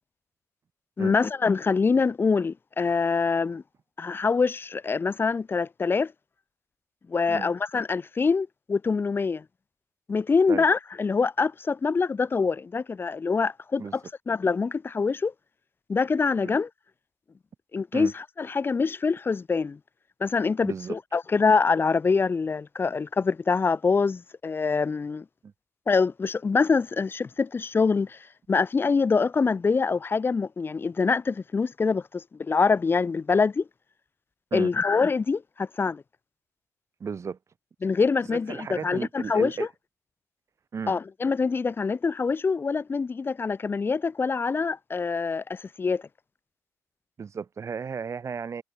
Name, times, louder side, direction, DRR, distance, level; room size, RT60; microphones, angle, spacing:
voice 1, 1.0-3.6 4.0-6.1 7.1-9.4 10.1-15.3 15.9-16.7 17.7-19.8 20.2-25.2 25.9-28.2 28.5-33.6 34.5-36.0 37.8-39.7 40.9-46.0, left 4 dB, 35° left, 0.7 m, -25 dB
voice 2, 20.6-21.0 25.4-25.5 34.5-34.7 37.0-37.4 38.3-39.7 40.7-40.9 47.2-48.6, right 6 dB, 50° right, 2.3 m, -34 dB
supercardioid pair, 65°, 6 cm